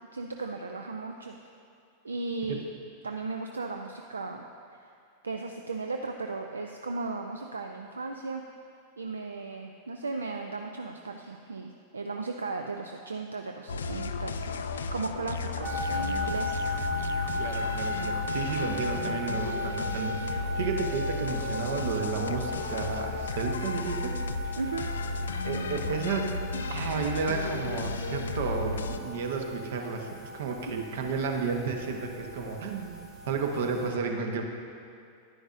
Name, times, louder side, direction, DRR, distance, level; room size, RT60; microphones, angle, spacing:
voice 1, 0.1-1.4 2.0-2.6 3.0-4.4 4.8-4.9 5.2-8.4 9.0-16.6 24.6-24.9, right 3 dB, 75° right, 4 dB, 0.4 m, -36 dB
sound 1, 13.7-29.0, left 3 dB, 70° left, 0.4 m, -34 dB
sound 2, 15.6-33.9, left 1 dB, 30° right, 1.5 m, -37 dB
voice 2, 17.4-24.2 24.4-24.6 25.4-26.3 26.6-34.4, right 5 dB, 60° right, 3 dB, 0.9 m, -32 dB
10.5 x 9.8 x 2.5 m, 2.4 s
figure-of-eight pair, 90°, 0 cm